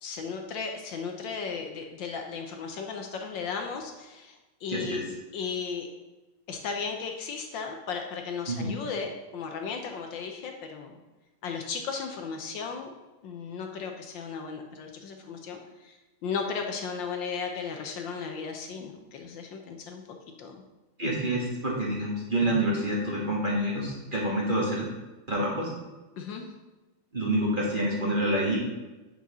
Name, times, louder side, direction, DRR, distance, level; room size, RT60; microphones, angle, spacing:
voice 1, 0.0-5.0 5.3-5.9 6.5-11.0 11.4-12.9 13.2-20.6 26.2-26.5, left 5 dB, 70° left, 3 dB, 1.4 m, -35 dB
voice 2, 4.7-5.0 8.5-8.8 21.0-24.9 25.3-25.7 27.1-28.6, right 1 dB, 25° right, -4 dB, 1.6 m, -27 dB
6.2 x 5.6 x 6.0 m, 1.1 s
omnidirectional pair, 2.3 m